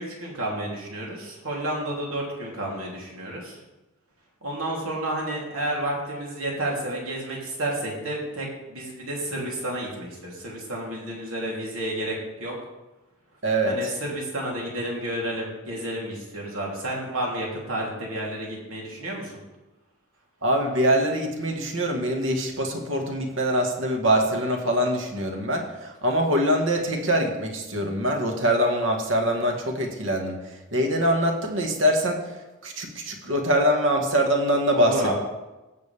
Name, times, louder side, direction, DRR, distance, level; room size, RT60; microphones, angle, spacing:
voice 1, 0.0-3.6 4.4-12.5 13.7-19.4 34.7-35.1, right 1 dB, 90° right, -3 dB, 3.2 m, -31 dB
voice 2, 13.4-13.9 20.4-30.4 30.7-32.2 32.6-35.1, equal, 65° right, 2 dB, 1.7 m, -23 dB
18.0 x 7.2 x 3.5 m, 1.1 s
head